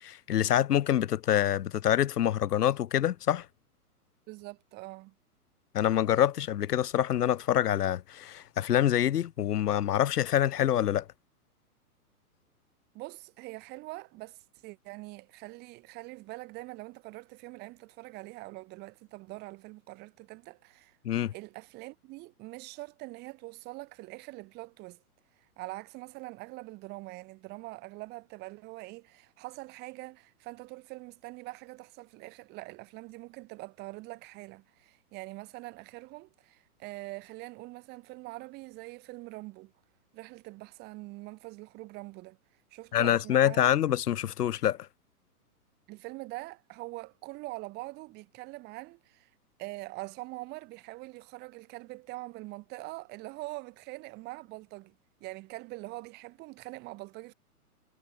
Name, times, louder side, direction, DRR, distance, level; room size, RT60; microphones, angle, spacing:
voice 1, 0.0-3.5 5.7-11.1 21.0-21.3 42.9-44.8, left 11 dB, 90° left, 0.6 m, -26 dB
voice 2, 4.3-5.1 12.9-21.0 21.3-25.0 25.6-39.7 40.1-42.4 42.7-43.7 45.9-49.3 49.6-57.3, right 22 dB, 20° right, 0.9 m, -44 dB
hypercardioid pair, 125°, 45 cm